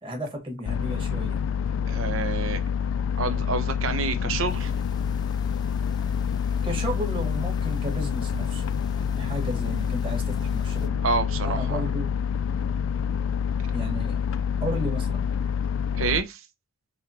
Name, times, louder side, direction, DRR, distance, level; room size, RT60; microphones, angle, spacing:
voice 1, 0.0-1.4 6.6-11.0 11.4-12.1 13.7-14.2 14.6-15.4, equal, 25° right, 1.5 m, -33 dB
sound 1, 0.6-16.2, left 7 dB, 70° left, 0.4 m, -27 dB
voice 2, 1.9-2.6 3.2-4.7 11.0-11.8 15.9-16.4, right 4 dB, 75° right, 0.8 m, -28 dB
sound 2, 4.5-10.9, left 2 dB, 20° left, 0.6 m, -46 dB
5.6 x 3.1 x 2.8 m
head